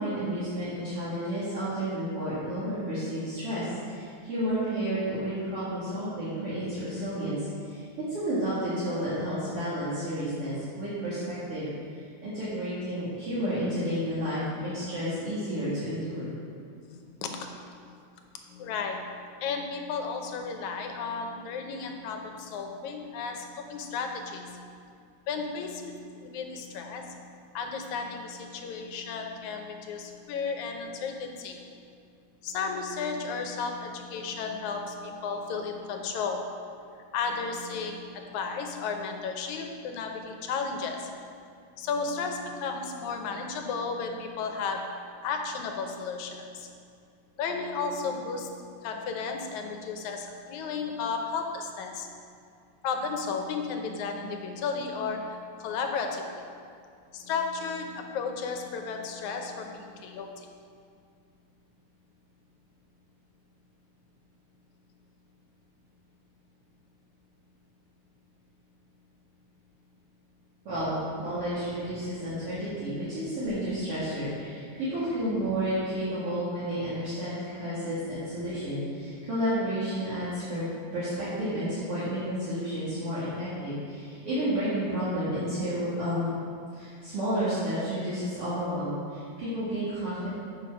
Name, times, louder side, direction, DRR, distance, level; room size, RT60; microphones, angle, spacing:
voice 1, 0.0-7.8 8.1-11.6 12.2-16.3 70.6-80.6 80.9-86.4 86.7-90.3, equal, 55° right, -12 dB, 2.8 m, -31 dB
voice 2, 16.9-17.5 17.8-18.0 18.4-24.8 25.3-31.7 32.4-36.5 37.1-41.2 41.8-44.9 45.2-46.8 47.4-52.1 52.8-56.5 57.1-60.5 71.8-71.9 76.1-76.2 77.6-77.8, left 5 dB, 85° left, 3 dB, 2.2 m, -34 dB
8.6 x 5.6 x 6.0 m, 2.3 s
omnidirectional pair, 3.3 m